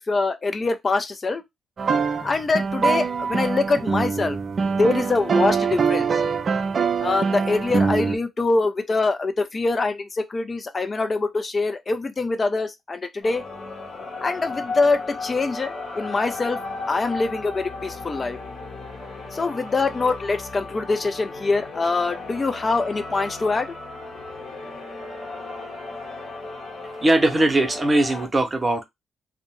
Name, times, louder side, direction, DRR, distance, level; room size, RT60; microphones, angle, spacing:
voice 1, 0.0-1.4 2.2-4.4 4.8-6.2 7.0-13.4 14.2-16.6 16.9-18.4 19.3-23.7, left 3 dB, 35° left, 0.4 m, -24 dB
sound 1, 1.8-8.2, right 5 dB, 50° right, 0.4 m, -23 dB
sound 2, 13.2-28.3, left 3 dB, 60° left, 0.9 m, -35 dB
voice 2, 27.0-28.8, right 1 dB, 30° right, 0.7 m, -20 dB
2.5 x 2.1 x 2.9 m
hypercardioid pair, 40°, 0 cm